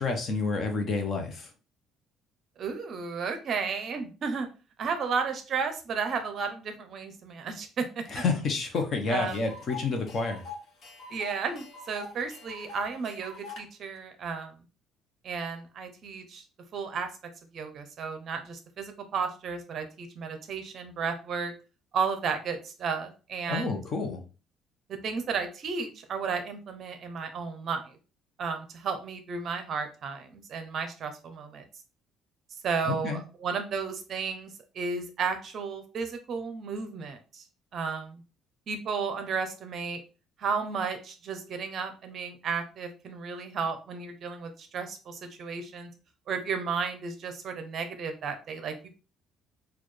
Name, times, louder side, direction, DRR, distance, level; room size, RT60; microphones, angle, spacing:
voice 1, 0.0-1.5 8.1-10.4 23.5-24.2 32.9-33.2, left 4 dB, 35° left, 5 dB, 0.7 m, -29 dB
voice 2, 2.6-4.5 4.8-8.1 9.1-9.4 11.1-14.5 15.2-16.4 16.7-17.1 17.5-21.5 21.9-23.8 24.9-27.8 28.4-31.6 32.6-37.4 37.7-38.2 38.7-40.0 40.4-45.9 46.3-48.9, right 5 dB, 40° right, 7 dB, 0.6 m, -33 dB
Tick, 8.7-8.8 9.1-13.6, left 3 dB, 55° left, 1.1 m, -44 dB
4.2 x 2.3 x 3.1 m, 0.34 s
cardioid pair, 165°, 0 cm